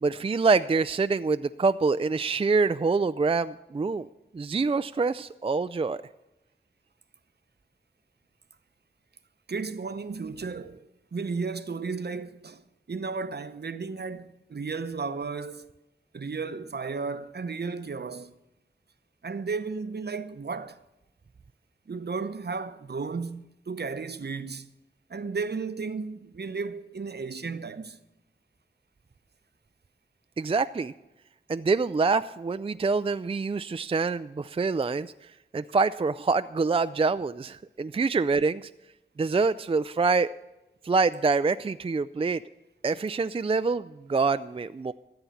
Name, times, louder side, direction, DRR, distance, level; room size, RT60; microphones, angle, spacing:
voice 1, 0.0-4.1 4.3-6.0 30.4-30.9 31.5-38.7 39.2-40.3 40.8-42.4 42.8-44.9, right 4 dB, 30° right, 0.4 m, -26 dB
voice 2, 9.5-10.8 11.1-12.6 12.9-15.7 16.1-18.4 19.2-20.8 21.9-24.7 25.1-28.0, right 4 dB, 60° right, 0.8 m, -34 dB
14.0 x 7.9 x 7.1 m
cardioid pair, 40°, 19 cm